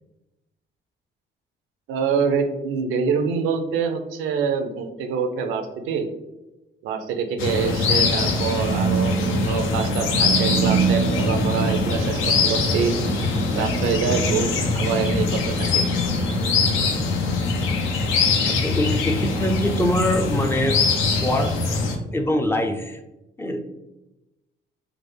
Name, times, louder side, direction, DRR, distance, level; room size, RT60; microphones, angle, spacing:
voice 1, 1.9-6.1 6.8-13.0 13.5-15.8, right 6 dB, 90° right, 6 dB, 0.5 m, -25 dB
sound 1, 7.4-22.0, left 2 dB, 85° left, 0.5 m, -22 dB
voice 2, 18.5-20.8 21.2-21.8 22.1-23.0 23.4-23.7, left 1 dB, 10° left, 4 dB, 0.4 m, -24 dB
3.3 x 2.0 x 3.3 m, 0.98 s
cardioid pair, 90°, 20 cm